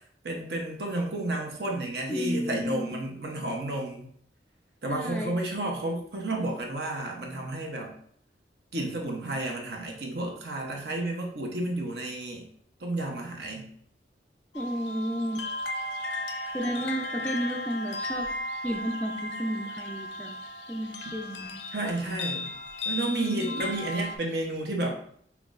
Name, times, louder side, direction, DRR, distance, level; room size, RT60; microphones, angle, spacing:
voice 1, 0.2-4.1 4.8-7.9 8.7-12.5 12.8-13.7 16.6-16.7 21.7-22.5 22.9-25.0, right 2 dB, 65° right, 1 dB, 0.8 m, -31 dB
voice 2, 2.1-2.9 4.9-5.3 14.5-15.4 16.5-18.3 18.6-20.4 20.7-21.6 23.1-23.5, equal, 10° left, 1 dB, 0.3 m, -32 dB
sound 1, 14.5-24.2, left 1 dB, 80° left, 0.4 m, -35 dB
5.7 x 2.3 x 2.5 m, 0.62 s
head